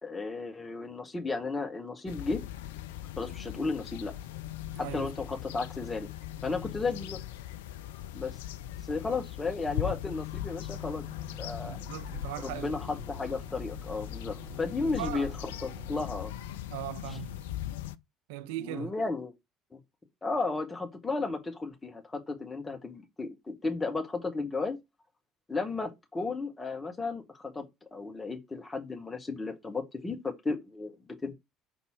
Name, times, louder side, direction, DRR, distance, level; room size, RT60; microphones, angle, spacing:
voice 1, 0.0-2.4 3.2-4.1 4.8-6.1 6.4-7.2 8.1-8.4 8.9-11.1 11.4-11.8 12.4-15.3 15.6-16.3 17.1-17.2 18.6-19.3 19.7-19.8 20.2-24.8 25.5-31.3, left 3 dB, 20° left, 1.9 m, -34 dB
sound 1, 2.1-18.0, left 12 dB, 70° left, 0.3 m, -39 dB
voice 2, 4.7-5.1 11.6-12.8 15.0-15.3 16.7-17.4 18.3-18.9, right 14 dB, 65° right, 0.3 m, -39 dB
sound 2, 10.7-16.0, right 2 dB, 10° right, 2.3 m, -49 dB
5.8 x 3.9 x 4.7 m
figure-of-eight pair, 60°, 0 cm